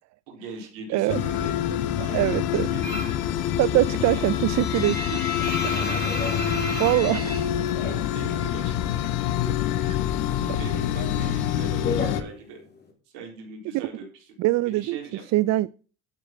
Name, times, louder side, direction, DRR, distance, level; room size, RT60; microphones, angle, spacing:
voice 1, 0.3-1.5 1.9-3.1 4.0-4.5 5.7-6.1 8.1-9.0 10.6-12.6 13.1-14.3 14.7-15.2, right 4 dB, 80° right, 4.1 m, -40 dB
voice 2, 0.9-1.2 2.1-2.7 3.6-5.2 6.8-7.4 9.5-10.0 13.7-13.9 14.4-15.0 15.3-15.7, right 18 dB, 50° right, 0.4 m, -23 dB
sound 1, 1.1-12.2, left 10 dB, 75° left, 1.4 m, -26 dB
sound 2, 2.8-3.3 3.6-8.5 8.7-9.8 10.1-12.9, left 2 dB, 30° left, 4.0 m, -33 dB
11.5 x 6.4 x 6.0 m
supercardioid pair, 85°, 35 cm